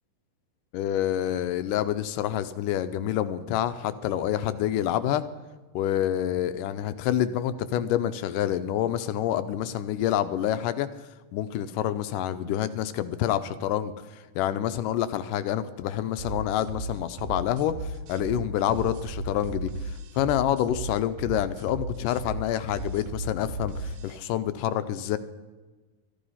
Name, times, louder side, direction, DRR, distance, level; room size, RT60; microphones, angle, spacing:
voice 1, 0.7-5.3 5.8-10.9 11.3-25.2, left 11 dB, 80° left, 12 dB, 2.1 m, -27 dB
sound 1, 16.2-24.2, right 1 dB, 70° right, 2.2 m, -35 dB
13.5 x 12.5 x 5.5 m, 1.2 s
omnidirectional pair, 3.9 m